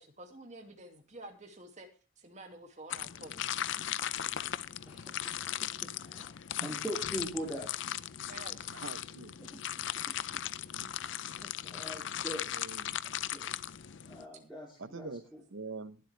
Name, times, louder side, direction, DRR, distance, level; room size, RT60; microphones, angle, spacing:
voice 1, 0.0-1.9 2.2-3.4 8.3-8.7, right 2 dB, 35° right, 2.3 m, -49 dB
sound 1, 2.9-14.3, left 11 dB, 60° left, 0.5 m, -38 dB
voice 2, 4.9-7.7 8.1-8.3 9.5-9.6 10.6-12.5 13.3-13.4 13.8-15.4, equal, 5° right, 2.9 m, -43 dB
voice 3, 8.7-9.3 10.7-10.9 12.5-13.0 14.8-15.2 15.5-16.0, right 3 dB, 65° right, 0.9 m, -44 dB
22.0 x 7.8 x 3.4 m
head